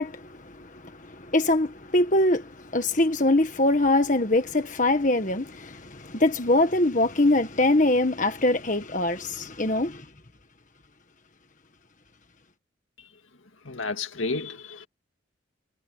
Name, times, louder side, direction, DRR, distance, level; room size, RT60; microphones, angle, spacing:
voice 1, 0.0-10.0, left 2 dB, 40° left, 1.6 m, -23 dB
voice 2, 13.7-14.9, left 3 dB, 80° left, 2.1 m, -31 dB
head